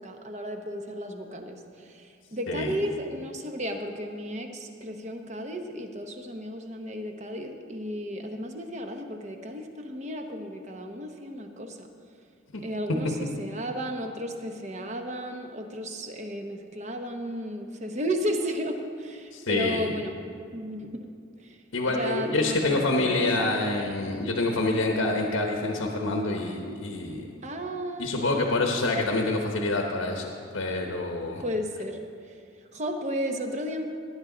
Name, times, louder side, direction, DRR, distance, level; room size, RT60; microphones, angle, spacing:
voice 1, 0.0-11.9 12.6-20.2 20.5-21.1 21.4-21.6 21.9-23.4 27.4-28.2 31.4-32.4 32.7-33.8, equal, 35° right, 4 dB, 0.9 m, -34 dB
voice 2, 19.3-19.9 21.7-27.3 28.0-31.4, left 2 dB, 75° left, 1 dB, 1.0 m, -27 dB
18.5 x 9.8 x 3.9 m, 2.3 s
head